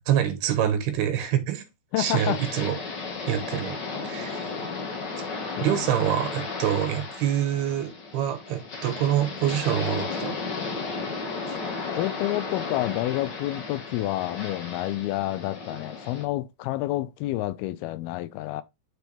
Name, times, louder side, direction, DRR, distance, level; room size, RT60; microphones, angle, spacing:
voice 1, 0.1-1.6 2.0-2.8 3.3-3.8 4.0-4.4 5.6-10.3, right 10 dB, 85° right, 3.3 m, -26 dB
voice 2, 1.9-2.4 5.6-5.8 11.9-18.6, left 16 dB, 85° left, 2.5 m, -29 dB
FL beachwaves, 2.0-16.2, left 4 dB, 65° left, 1.1 m, -34 dB
9.5 x 4.6 x 3.3 m
omnidirectional pair, 4.4 m